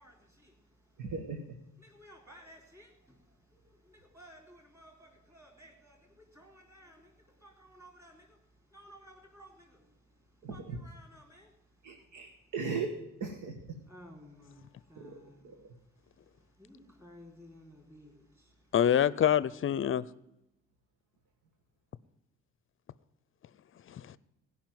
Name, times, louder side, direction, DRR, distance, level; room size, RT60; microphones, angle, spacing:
voice 1, 0.0-1.1 1.8-12.5 13.9-15.7 15.9-18.8, equal, 10° right, 3.9 m, -57 dB
voice 2, 1.0-1.4 10.4-10.8 11.8-12.9 13.2-13.6 14.9-15.1 15.4-15.7, right 5 dB, 85° right, 1.7 m, -38 dB
voice 3, 18.7-20.1 23.9-24.2, left 10 dB, 45° left, 0.6 m, -26 dB
16.5 x 5.7 x 9.2 m
cardioid pair, 90°, 30 cm